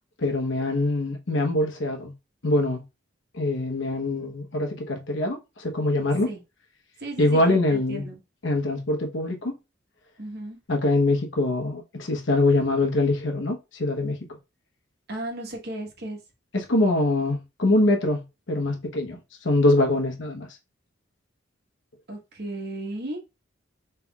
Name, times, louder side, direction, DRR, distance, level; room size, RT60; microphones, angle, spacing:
voice 1, 0.2-2.1 2.4-2.8 3.3-6.3 7.2-8.1 8.4-9.5 10.7-14.2 16.5-19.2 19.4-20.5, left 2 dB, 70° left, 1.0 m, -24 dB
voice 2, 7.0-8.2 10.2-10.6 15.1-16.2 22.1-23.2, right 1 dB, 55° right, 1.3 m, -35 dB
5.5 x 3.3 x 2.3 m
head